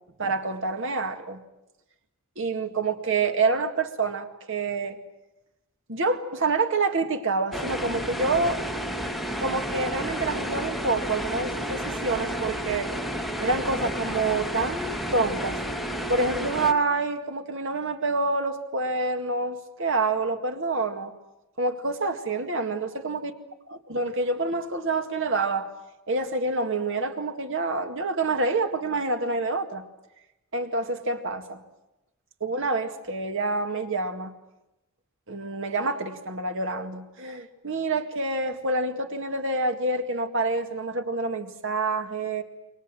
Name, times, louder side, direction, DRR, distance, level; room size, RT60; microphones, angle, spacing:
voice 1, 0.2-1.4 2.4-5.0 5.9-8.6 9.4-12.9 13.4-15.6 16.1-21.1 21.6-23.3 23.9-25.7 26.1-29.8 30.5-31.6 32.4-34.3 35.3-42.4, right 3 dB, 60° right, 6 dB, 2.1 m, -27 dB
sound 1, 7.5-16.7, equal, ahead, 1.0 m, -31 dB
29.0 x 24.0 x 7.7 m, 0.94 s
head